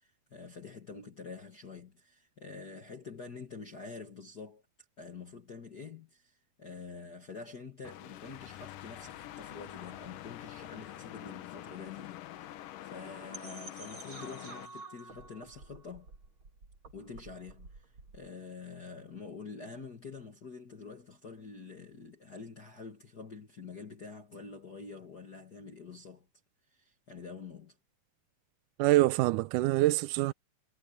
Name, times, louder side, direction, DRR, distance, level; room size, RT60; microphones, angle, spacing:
voice 1, 0.0-4.6 5.0-16.1 16.9-26.3 26.7-27.8, left 4 dB, 40° left, 1.6 m, -47 dB
sound 1, 7.8-14.7, left 13 dB, 75° left, 2.6 m, -46 dB
sound 2, 13.3-18.3, right 3 dB, 35° right, 3.7 m, -50 dB
voice 2, 28.8-30.3, right 17 dB, 80° right, 2.0 m, -25 dB
omnidirectional pair, 4.0 m